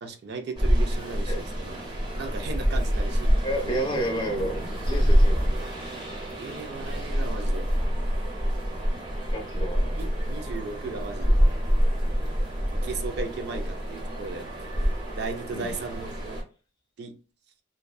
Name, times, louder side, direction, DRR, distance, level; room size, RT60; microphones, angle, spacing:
voice 1, 0.0-1.8 2.2-3.3 3.6-4.0 6.4-7.7 10.0-11.4 12.7-14.9 15.2-16.4 17.0-17.2, right 4 dB, 55° right, 0.4 m, -36 dB
sound 1, 0.6-16.4, equal, 25° right, 0.7 m, -26 dB
voice 2, 3.4-5.5 6.2-6.3 9.3-10.1 15.5-15.7, equal, 25° left, 0.5 m, -31 dB
2.6 x 2.2 x 2.2 m
head